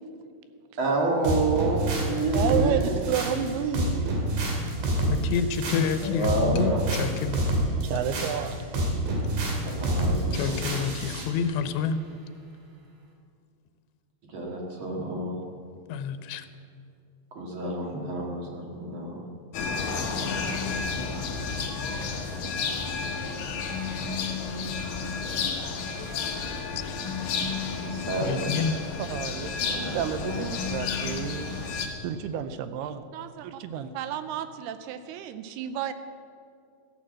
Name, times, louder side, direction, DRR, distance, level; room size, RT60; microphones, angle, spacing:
voice 1, 0.8-3.0 5.7-6.8 9.6-10.6 14.3-15.4 17.3-19.2 27.9-28.5 29.6-30.4, right 2 dB, 40° right, -1 dB, 2.1 m, -29 dB
sound 1, 1.2-11.3, right 1 dB, 60° right, 3.8 m, -28 dB
voice 2, 2.3-4.1 7.8-8.6 29.0-31.6 32.0-35.9, right 9 dB, 80° right, 11 dB, 2.6 m, -31 dB
voice 3, 5.1-7.4 10.3-12.0 15.9-16.5 28.2-28.8, left 6 dB, 85° left, 11 dB, 3.0 m, -28 dB
sound 2, 19.5-31.9, left 5 dB, 65° left, 2.7 m, -31 dB
14.5 x 11.0 x 7.6 m, 2.3 s
omnidirectional pair, 4.8 m